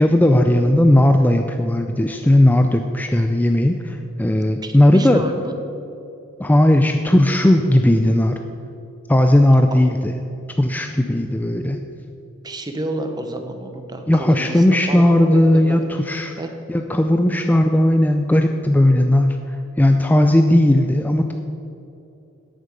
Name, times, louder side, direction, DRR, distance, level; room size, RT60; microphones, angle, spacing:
voice 1, 0.0-5.2 6.4-8.4 9.1-10.2 10.6-11.8 14.1-16.3 16.7-21.3, left 1 dB, 10° left, 5 dB, 0.4 m, -16 dB
voice 2, 4.6-5.5 9.5-9.8 12.4-15.8 16.1-16.5, right 1 dB, 20° right, 6 dB, 1.0 m, -30 dB
10.0 x 8.8 x 6.8 m, 2.8 s
head